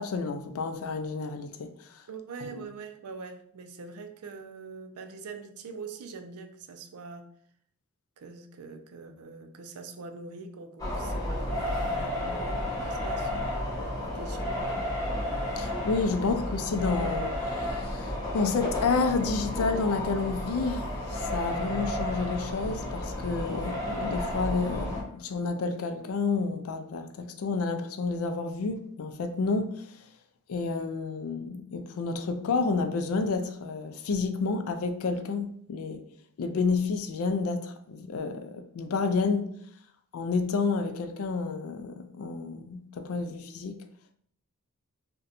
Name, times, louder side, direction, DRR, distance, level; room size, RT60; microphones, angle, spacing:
voice 1, 0.0-2.0 2.5-2.7 15.6-30.1 30.5-36.0 36.4-39.6 40.1-43.8, left 4 dB, 65° left, 0.4 m, -30 dB
voice 2, 2.1-7.3 8.2-13.5 14.0-14.9 16.2-16.3, right 4 dB, 75° right, 0.4 m, -43 dB
sound 1, 10.8-25.0, left 1 dB, 15° left, 0.9 m, -32 dB
2.6 x 2.2 x 4.0 m
head